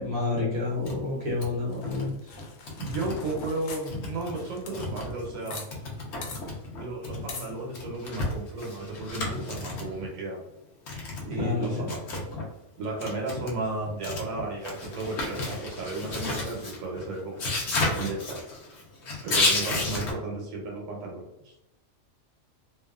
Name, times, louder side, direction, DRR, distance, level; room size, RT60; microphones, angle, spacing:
voice 1, 0.0-2.1 10.9-11.0 11.4-11.9, left 3 dB, 50° right, -4 dB, 1.0 m, -29 dB
sound 1, 0.6-1.0 1.3-1.5 1.8-2.1 2.4-3.5 3.9-5.4 5.7-10.1 10.9-12.5 12.8-20.1, left 2 dB, 60° left, 0.9 m, -32 dB
sound 2, 1.7-5.7 5.9-6.0 6.2-6.4 7.3-7.5, left 4 dB, 90° left, 1.0 m, -42 dB
voice 2, 2.8-5.6 6.8-10.4 11.2-12.2 12.8-17.6 17.9-18.4 19.2-21.5, right 2 dB, 85° right, -1 dB, 1.1 m, -34 dB
2.7 x 2.4 x 2.3 m, 0.85 s
omnidirectional pair, 1.4 m